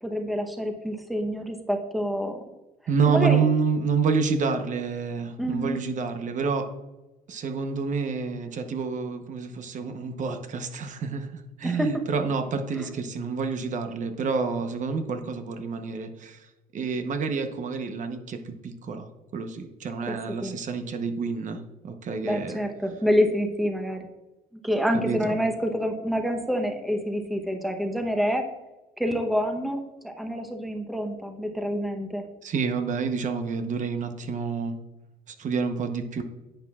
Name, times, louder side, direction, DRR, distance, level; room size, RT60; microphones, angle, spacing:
voice 1, 0.0-2.4 3.1-3.4 5.4-5.9 11.6-11.9 12.8-12.9 20.1-20.2 20.4-20.6 22.2-24.1 24.6-28.4 29.0-32.2, equal, ahead, 3 dB, 0.9 m, -27 dB
voice 2, 2.9-6.7 7.3-16.5 16.7-19.1 19.3-22.6 25.0-25.4 32.4-34.8 35.3-36.2, right 5 dB, 50° right, 6 dB, 0.9 m, -28 dB
10.0 x 7.8 x 2.4 m, 1.0 s
cardioid pair, 110°, 17 cm